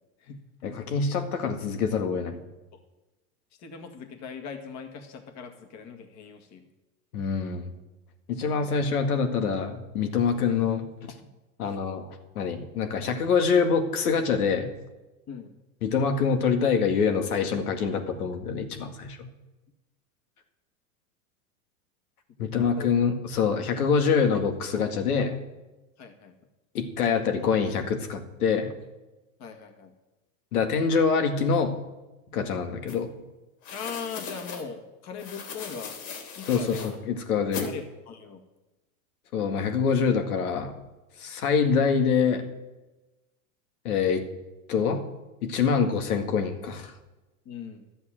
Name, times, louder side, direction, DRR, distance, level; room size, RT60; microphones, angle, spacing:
voice 1, 0.6-2.4 7.1-7.7 8.3-11.1 11.6-12.0 12.4-14.7 15.8-19.3 22.4-25.4 26.7-28.7 30.5-31.7 32.3-33.1 36.5-36.8 37.1-37.7 39.3-40.7 41.2-42.4 43.8-44.2 44.7-45.0 45.4-46.9, left 6 dB, 80° left, 6 dB, 2.1 m, -25 dB
voice 2, 3.6-6.7 8.4-8.8 15.3-15.5 22.4-22.9 26.0-26.3 27.1-27.5 29.4-29.9 33.7-36.0 36.4-36.9 37.6-38.4 47.5-47.8, left 6 dB, 40° left, 5 dB, 2.0 m, -40 dB
sound 1, 32.9-33.0 33.6-34.6 35.2-36.9 37.5-37.7, left 5 dB, 60° left, 3.1 m, -38 dB
12.0 x 7.9 x 7.6 m, 1.1 s
hypercardioid pair, 110°, 43 cm